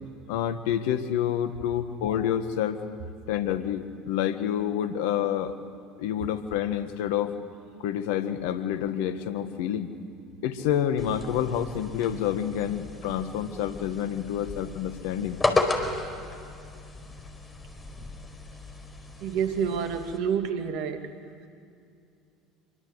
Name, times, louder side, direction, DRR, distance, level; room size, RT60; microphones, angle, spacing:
voice 1, 0.3-2.8 3.3-5.5 6.0-7.3 7.8-9.9 10.4-15.4, left 10 dB, 70° left, 10 dB, 1.7 m, -28 dB
sound 1, 11.0-20.2, left 3 dB, 20° left, 4.5 m, -34 dB
voice 2, 19.2-21.1, right 7 dB, 65° right, 7 dB, 2.2 m, -28 dB
27.0 x 23.5 x 8.2 m, 2.5 s
hypercardioid pair, 70°, 0 cm